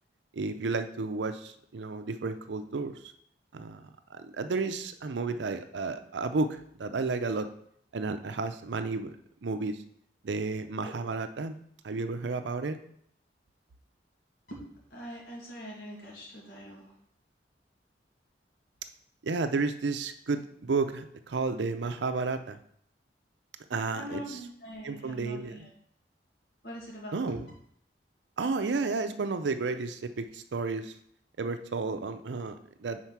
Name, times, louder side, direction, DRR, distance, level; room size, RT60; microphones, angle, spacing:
voice 1, 0.3-3.0 3.5-7.5 7.9-9.1 9.4-9.8 10.2-11.6 11.8-12.8 19.2-22.6 23.7-24.4 24.8-25.6 27.1-27.4 28.4-30.9 31.4-33.0, right 3 dB, 80° right, 9 dB, 0.5 m, -32 dB
voice 2, 14.9-16.9 23.9-25.7 26.6-27.2, equal, 60° left, -3 dB, 2.0 m, -43 dB
4.6 x 4.4 x 5.7 m, 0.67 s
head